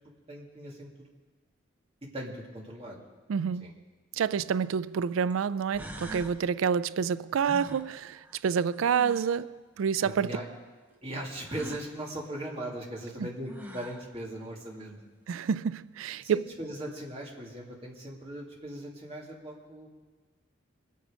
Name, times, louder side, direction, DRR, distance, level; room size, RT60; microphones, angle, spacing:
voice 1, 0.3-1.1 2.1-3.0 3.6-3.7 4.3-4.4 10.0-10.4 11.0-15.0 16.2-19.9, right 1 dB, 30° right, 2.3 m, -39 dB
voice 2, 3.3-3.7 4.1-10.3 13.2-13.3 15.3-16.4, right 7 dB, 90° right, 0.3 m, -28 dB
sound 1, 5.3-5.4 5.7-6.4 7.4-9.4 11.4-11.9 13.1-13.2 13.5-14.1, equal, 10° right, 0.8 m, -43 dB
22.0 x 8.5 x 5.0 m
head